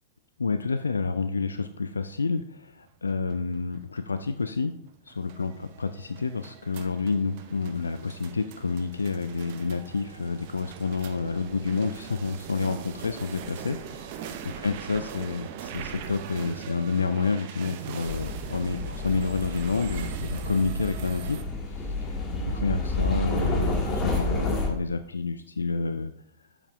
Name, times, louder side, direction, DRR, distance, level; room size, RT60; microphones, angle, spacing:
voice 1, 0.4-4.7 5.1-21.4 21.7-26.1, left 4 dB, 75° left, 10 dB, 0.3 m, -29 dB
sound 1, 2.8-21.4, right 8 dB, 45° right, 0.7 m, -41 dB
sound 2, 18.0-24.7, left 2 dB, 25° left, 1.5 m, -30 dB
8.5 x 7.1 x 2.4 m, 0.71 s
figure-of-eight pair, 100°, 0 cm